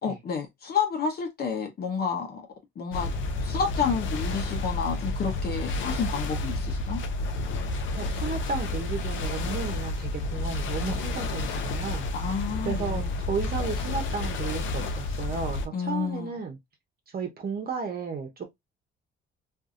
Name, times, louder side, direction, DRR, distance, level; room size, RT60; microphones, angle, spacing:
voice 1, 0.0-2.4 2.8-3.1 3.4-7.0 12.1-13.1 15.7-16.4, left 6 dB, 50° left, 0.9 m, -30 dB
sound 1, 2.9-15.7, left 2 dB, 75° left, 0.6 m, -30 dB
voice 2, 7.9-12.1 12.6-16.6 17.1-18.5, right 5 dB, 50° right, 1.0 m, -33 dB
2.6 x 2.6 x 2.4 m
cardioid pair, 90°, 20 cm